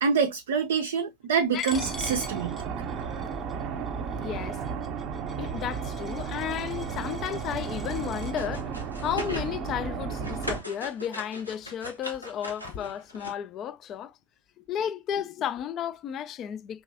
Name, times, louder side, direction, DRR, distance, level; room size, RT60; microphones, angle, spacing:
voice 1, 0.0-2.6, right 6 dB, 60° right, 0.5 m, -26 dB
Coin (dropping), 1.6-8.3, left 4 dB, 15° left, 0.8 m, -45 dB
sound 1, 1.7-10.6, right 6 dB, 35° right, 0.8 m, -34 dB
voice 2, 4.1-4.6 5.4-14.2 14.6-16.8, left 9 dB, 30° left, 0.4 m, -33 dB
sound 2, 8.2-9.5 9.9-13.3, equal, 90° left, 1.0 m, -39 dB
4.7 x 3.0 x 2.5 m
figure-of-eight pair, 90°, 0 cm